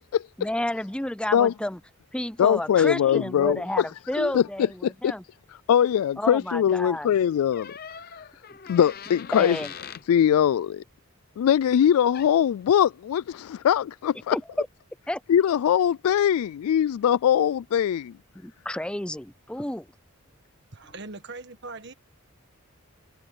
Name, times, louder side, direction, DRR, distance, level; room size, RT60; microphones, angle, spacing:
voice 1, 0.4-1.8 2.1-5.2 6.2-7.1 9.3-9.7 14.3-14.7 15.1-15.2 18.4-19.9, left 1 dB, 5° left, 0.5 m, -31 dB
voice 2, 2.4-3.8 4.2-4.4 4.8-5.1 5.7-7.7 8.7-9.6 10.1-10.8 11.4-14.4 15.3-18.1, left 9 dB, 85° left, 0.3 m, -21 dB
sound 1, 7.5-10.1 12.1-12.3, left 7 dB, 45° left, 0.7 m, -41 dB
voice 3, 20.7-21.9, right 3 dB, 50° right, 1.5 m, -40 dB
head